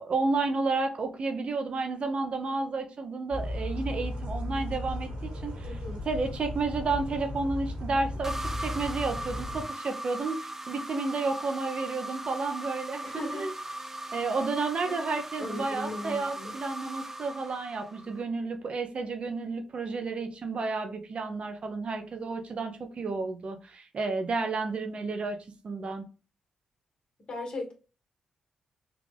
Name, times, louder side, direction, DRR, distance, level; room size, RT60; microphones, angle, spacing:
voice 1, 0.0-5.8 6.0-13.0 13.3-13.5 14.1-25.4 25.6-26.0, right 3 dB, 55° right, 5 dB, 0.7 m, -31 dB
sound 1, 3.3-9.6, left 1 dB, 75° right, 1.6 m, -35 dB
voice 2, 5.6-6.1 13.0-13.5 14.6-15.0 15.4-16.5 27.3-27.7, left 2 dB, 45° left, 1 dB, 1.7 m, -38 dB
sound 2, 8.2-18.2, right 1 dB, 15° right, 0.5 m, -39 dB
3.6 x 2.4 x 3.3 m, 0.34 s
supercardioid pair, 45°, 2 cm